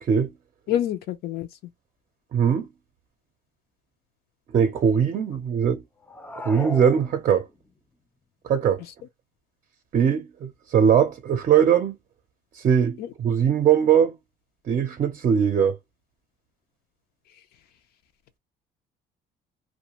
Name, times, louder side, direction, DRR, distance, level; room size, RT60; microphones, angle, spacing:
voice 1, 0.7-1.5 8.8-8.9 13.0-13.1, left 11 dB, 70° left, 0.4 m, -27 dB
voice 2, 2.3-2.7 4.5-5.8 6.4-7.5 8.4-8.8 9.9-12.0 12.5-14.1 14.7-15.8, right 8 dB, 45° right, 0.5 m, -21 dB
sound 1, 6.0-7.7, left 1 dB, 10° left, 0.4 m, -37 dB
2.3 x 2.2 x 2.9 m
cardioid pair, 110°, 17 cm